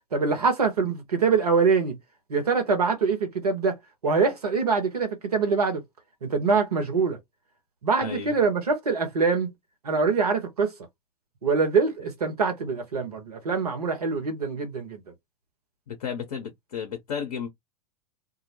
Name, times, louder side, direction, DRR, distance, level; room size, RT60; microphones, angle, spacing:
voice 1, 0.1-2.0 2.3-3.8 4.0-5.8 6.2-7.2 7.8-9.5 9.8-10.7 11.4-15.0, right 4 dB, 80° right, 0.9 m, -24 dB
voice 2, 8.0-8.3 15.9-17.5, left 7 dB, 70° left, 0.6 m, -33 dB
2.2 x 2.1 x 2.8 m
figure-of-eight pair, 85°, 19 cm